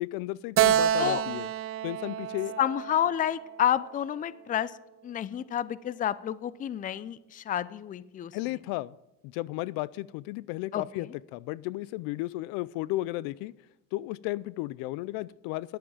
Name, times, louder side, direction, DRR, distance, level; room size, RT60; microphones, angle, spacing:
voice 1, 0.0-1.5 1.8-2.5 8.3-9.0 9.2-13.5 13.9-15.8, left 18 dB, 75° left, 21 dB, 0.5 m, -34 dB
Keyboard (musical), 0.6-4.0, right 11 dB, 40° right, 0.5 m, -28 dB
voice 2, 2.6-4.7 5.0-8.3 10.7-10.8, left 10 dB, 25° left, 18 dB, 0.4 m, -29 dB
10.5 x 8.5 x 7.3 m, 0.93 s
supercardioid pair, 115°, 36 cm